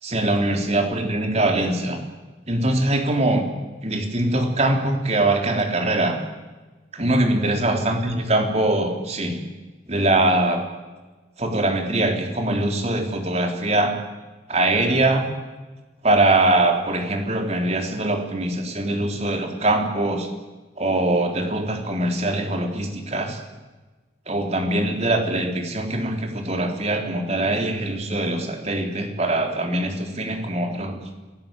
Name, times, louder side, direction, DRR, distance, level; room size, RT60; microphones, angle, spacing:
voice 1, 0.0-2.0 2.5-3.4 3.8-6.2 6.9-9.4 9.9-10.6 11.4-13.9 14.5-15.3 16.0-20.3 20.8-23.4 24.3-31.0, right 2 dB, 35° right, 4 dB, 3.7 m, -22 dB
27.5 x 18.5 x 9.0 m, 1.2 s
head